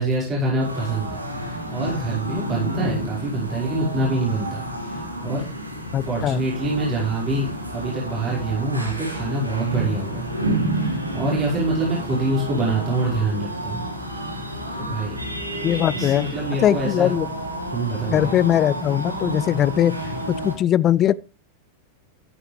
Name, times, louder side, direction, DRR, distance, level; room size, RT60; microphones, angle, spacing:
voice 1, 0.0-5.4 6.0-13.8 14.7-15.2 15.7-17.1 17.7-18.4, right 2 dB, 30° right, 5.1 m, -26 dB
sound 1, 0.6-20.6, right 1 dB, 85° right, 2.9 m, -30 dB
voice 2, 5.9-6.4 15.6-16.3 16.6-17.3 18.1-19.9 20.3-21.2, left 11 dB, 30° left, 0.5 m, -20 dB
14.0 x 11.0 x 3.3 m
figure-of-eight pair, 90°, 0 cm